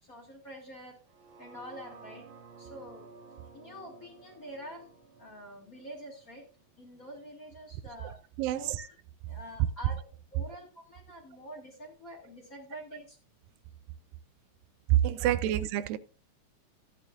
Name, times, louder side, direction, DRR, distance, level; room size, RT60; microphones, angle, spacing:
voice 1, 0.0-1.0 1.4-2.3 2.6-3.1 3.5-4.9 5.2-6.5 6.8-8.2 8.5-9.0 9.3-13.2 15.1-15.2, equal, 30° left, 2.0 m, -46 dB
sound 1, 1.0-7.2 7.6-7.7, right 4 dB, 65° right, 3.0 m, -53 dB
voice 2, 8.4-8.8 14.9-16.0, right 13 dB, 85° right, 2.3 m, -27 dB
14.5 x 9.3 x 2.4 m
omnidirectional pair, 3.9 m